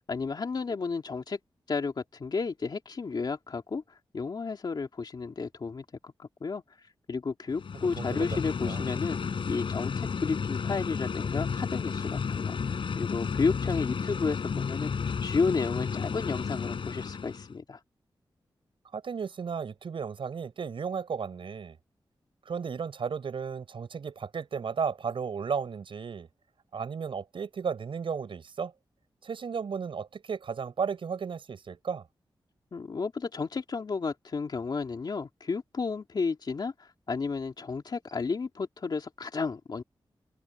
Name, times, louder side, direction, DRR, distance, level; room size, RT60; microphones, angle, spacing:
voice 1, 0.0-1.4 1.7-3.8 4.1-6.6 7.1-9.2 9.5-17.8 32.7-39.8, left 4 dB, 55° left, 2.7 m, -32 dB
sound 1, 7.5-17.5, left 6 dB, 75° left, 6.5 m, -32 dB
voice 2, 8.0-8.4 8.7-8.8 18.9-21.8 22.5-26.3 26.7-28.7 29.2-32.0, right 6 dB, 80° right, 6.2 m, -34 dB
wide cardioid pair, 115°, 9 cm